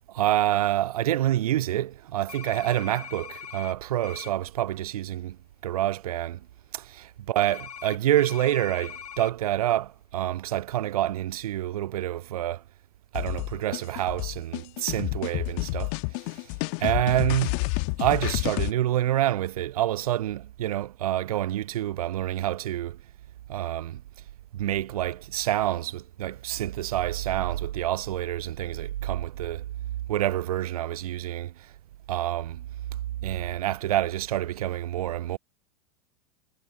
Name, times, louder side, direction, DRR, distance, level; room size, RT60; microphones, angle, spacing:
voice 1, 0.1-5.4 5.6-6.4 6.7-12.6 13.1-16.5 16.8-17.6 18.0-23.0 23.5-24.0 24.5-29.6 30.1-31.7 32.1-32.6 33.2-35.4, right 13 dB, 65° right, 0.5 m, -27 dB
sound 1, 2.3-3.7 4.0-4.3 7.4-9.3, left 8 dB, 70° left, 1.5 m, -41 dB
sound 2, 13.2-18.7, left 35 dB, 45° left, 1.4 m, -30 dB
figure-of-eight pair, 90°, 20 cm